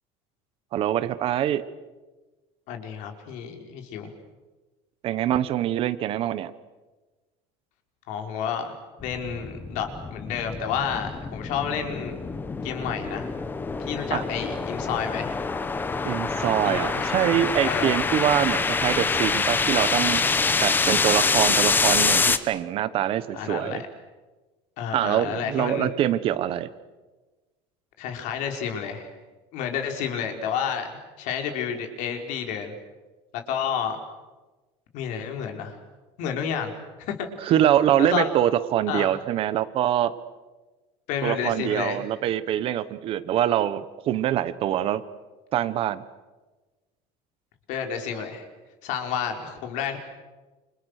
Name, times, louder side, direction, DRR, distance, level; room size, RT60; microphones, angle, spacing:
voice 1, 0.7-1.6 5.0-6.5 14.1-14.2 16.0-20.3 20.6-23.8 24.9-26.7 37.5-40.1 41.2-45.0 45.5-46.0, right 11 dB, 40° right, 14 dB, 1.2 m, -24 dB
voice 2, 2.7-4.1 8.1-8.7 9.0-12.2 12.6-13.3 13.8-15.3 16.6-17.1 17.6-18.0 23.3-23.9 24.8-25.9 28.0-29.1 29.5-32.7 33.5-34.0 34.9-35.8 36.2-36.7 37.0-37.5 38.0-38.3 38.9-39.1 41.1-42.0 47.7-48.5 48.8-50.0, left 7 dB, 55° left, 4 dB, 4.5 m, -30 dB
sound 1, 9.0-22.4, left 4 dB, 15° left, 1.1 m, -26 dB
29.0 x 28.0 x 6.6 m, 1.2 s
cardioid pair, 170°, 15 cm